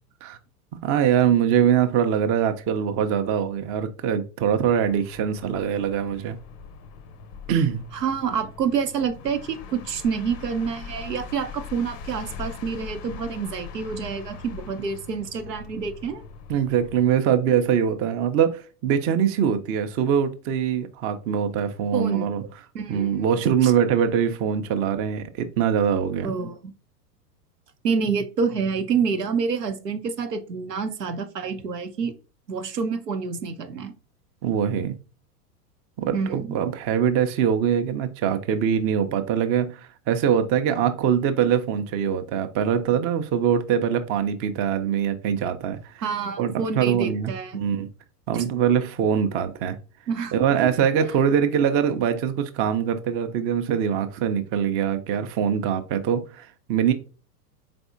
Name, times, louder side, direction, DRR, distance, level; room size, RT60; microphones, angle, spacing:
voice 1, 0.8-6.4 7.5-7.9 16.5-22.4 22.9-26.3 34.4-35.0 36.0-46.0 46.4-47.9 48.3-49.8 50.3-56.9, right 8 dB, 30° right, 0.6 m, -23 dB
sound 1, 4.6-17.2, left 6 dB, 35° left, 0.5 m, -41 dB
voice 2, 7.9-16.2 21.9-23.2 23.6-23.7 26.2-26.7 27.8-32.1 32.5-33.9 36.1-36.6 46.0-47.6 48.3-48.4 50.1-50.3 51.0-51.1, right 6 dB, 90° right, 0.8 m, -28 dB
4.2 x 3.4 x 2.5 m
hypercardioid pair, 95°, 47 cm